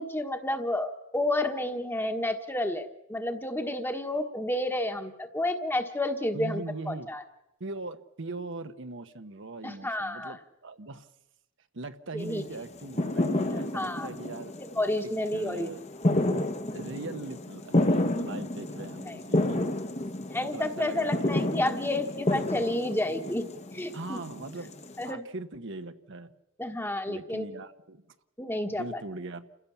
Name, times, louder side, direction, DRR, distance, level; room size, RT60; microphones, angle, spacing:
voice 1, 0.0-7.2 9.6-10.4 12.1-12.4 13.5-14.1 14.8-15.7 16.7-16.8 19.1-19.2 20.3-23.5 23.7-24.2 25.0-25.2 26.6-27.5 28.4-29.0, left 1 dB, 10° left, 6 dB, 1.4 m, -30 dB
voice 2, 6.3-7.1 7.6-11.1 11.7-14.5 15.3-15.8 16.7-19.7 20.4-21.6 23.9-24.7 25.0-26.3 27.1-28.0 28.7-29.4, right 2 dB, 60° right, 9 dB, 1.1 m, -40 dB
sound 1, 12.2-25.1, left 1 dB, 30° left, 1.1 m, -30 dB
29.0 x 16.0 x 7.1 m, 0.90 s
head